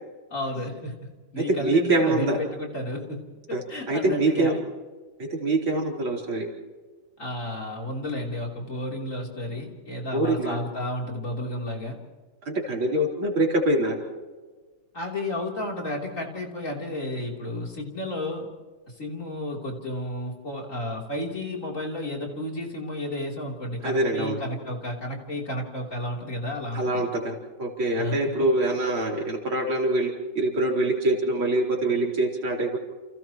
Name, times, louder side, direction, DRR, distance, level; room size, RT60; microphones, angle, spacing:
voice 1, 0.3-3.2 3.7-4.6 7.2-12.0 14.9-18.5 18.9-27.0 28.0-28.3, left 1 dB, 35° left, -1 dB, 3.8 m, -32 dB
voice 2, 1.5-2.4 3.5-4.5 5.2-6.5 10.1-10.6 12.4-14.0 23.8-24.4 26.7-32.8, right 2 dB, 65° right, 0 dB, 4.4 m, -24 dB
30.0 x 29.0 x 3.0 m, 1.3 s
omnidirectional pair, 2.4 m